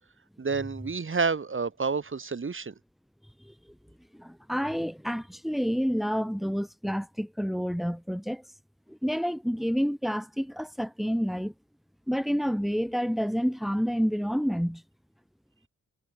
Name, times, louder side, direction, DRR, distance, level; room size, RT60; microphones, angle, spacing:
voice 1, 0.4-2.7, right 4 dB, 40° right, 2.5 m, -29 dB
voice 2, 4.1-8.4 8.9-11.5 12.1-14.8, equal, ahead, 0.8 m, -29 dB
wide cardioid pair, 100°, 31 cm